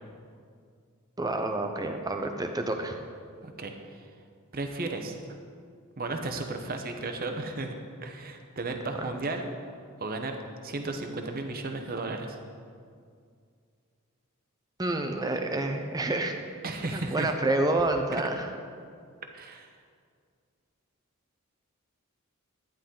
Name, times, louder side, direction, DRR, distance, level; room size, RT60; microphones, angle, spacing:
voice 1, 1.2-2.9 9.0-9.1 14.8-16.4 16.9-18.5, right 2 dB, 15° right, 5 dB, 0.7 m, -28 dB
voice 2, 3.4-4.1 4.5-5.2 6.0-7.8 8.0-12.4 16.6-17.3 18.1-18.2 19.3-19.7, right 2 dB, 45° right, 5 dB, 0.9 m, -34 dB
11.0 x 10.0 x 3.9 m, 2.2 s
head